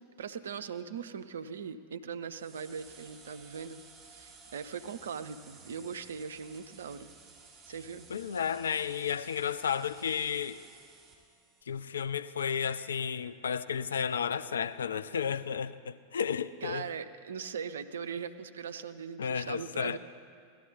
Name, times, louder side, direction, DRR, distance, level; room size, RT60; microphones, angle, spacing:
voice 1, 0.2-7.1 7.7-8.1 16.6-20.0, right 6 dB, 65° right, 0.5 m, -40 dB
sound 1, 2.3-11.6, right 4 dB, 25° right, 3.5 m, -55 dB
voice 2, 8.1-10.6 11.7-16.9 19.2-20.0, left 7 dB, 65° left, 0.4 m, -32 dB
17.5 x 12.5 x 4.1 m
figure-of-eight pair, 90°, 0 cm